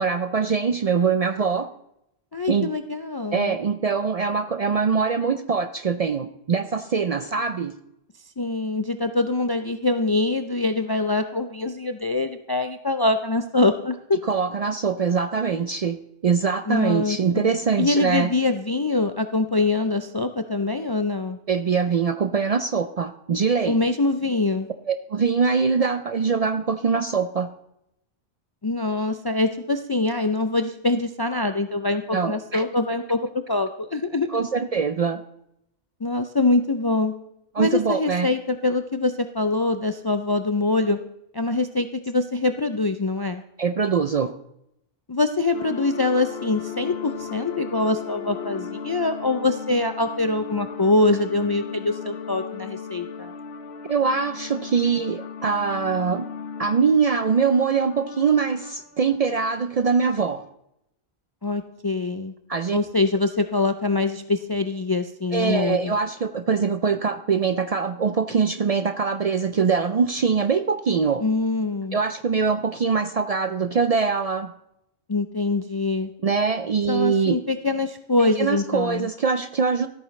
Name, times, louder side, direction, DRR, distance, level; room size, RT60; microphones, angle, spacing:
voice 1, 0.0-1.7 2.5-2.7 3.3-7.7 14.2-16.0 16.2-18.3 21.5-23.8 24.9-27.5 32.1-32.6 34.3-35.2 37.5-38.3 43.6-44.3 53.9-56.3 56.6-60.4 62.5-62.8 65.3-71.2 71.9-74.5 76.2-77.4 78.2-79.9, right 5 dB, 55° right, 10 dB, 0.4 m, -23 dB
voice 2, 2.3-3.6 8.4-14.0 16.7-17.5 17.8-21.4 23.7-24.7 28.6-33.2 33.5-34.4 36.0-37.1 37.6-41.0 41.3-43.4 45.1-53.3 61.4-62.3 62.7-65.9 71.2-72.0 75.1-76.1 76.9-79.1, left 2 dB, 40° left, 8 dB, 0.3 m, -24 dB
sound 1, 45.5-59.2, left 5 dB, 85° left, 1.0 m, -36 dB
14.0 x 8.8 x 3.2 m, 0.80 s
omnidirectional pair, 1.1 m